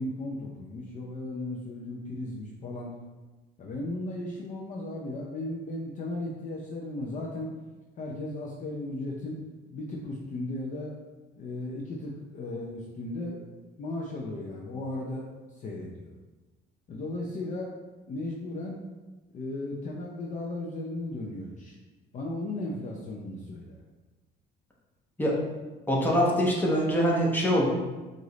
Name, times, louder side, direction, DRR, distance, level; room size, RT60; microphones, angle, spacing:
voice 1, 0.0-2.9 3.6-7.6 8.0-9.4 9.7-10.9 11.4-13.5 13.8-16.1 16.9-17.7 18.1-18.8 19.3-21.8 22.1-23.8, left 2 dB, 45° left, -2 dB, 0.6 m, -36 dB
voice 2, 25.9-27.7, equal, 10° left, -4 dB, 1.0 m, -24 dB
4.9 x 2.6 x 3.9 m, 1.2 s
cardioid pair, 125°, 19 cm